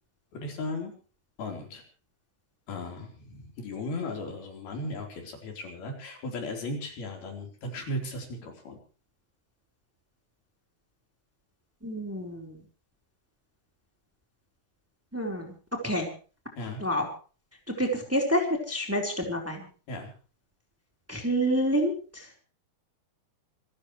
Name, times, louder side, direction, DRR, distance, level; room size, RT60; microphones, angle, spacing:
voice 1, 0.3-0.9 1.4-1.8 2.7-8.8 16.6-16.8 19.9-20.1, left 2 dB, 80° left, 3 dB, 6.1 m, -36 dB
voice 2, 11.8-12.6 15.1-15.5 15.8-16.1 16.8-17.1 17.8-19.7 21.1-22.4, equal, 5° right, 2 dB, 3.9 m, -28 dB
27.5 x 14.5 x 3.2 m, 0.38 s
omnidirectional pair, 4.3 m